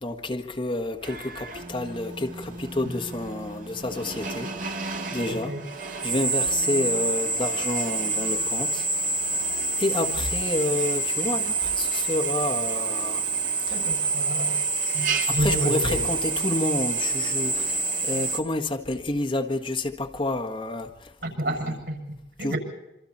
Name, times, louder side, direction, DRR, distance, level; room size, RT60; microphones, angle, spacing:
voice 1, 0.0-4.5 4.8-5.5 6.0-8.9 9.8-13.2 15.2-20.9 22.4-22.6, left 2 dB, 30° left, 1.6 m, -29 dB
Drill, 1.0-18.4, right 4 dB, 50° right, 1.6 m, -28 dB
voice 2, 5.3-5.6 13.7-14.6 14.9-16.1 21.2-22.6, right 1 dB, 90° right, 7.3 m, -30 dB
26.5 x 25.5 x 4.3 m
head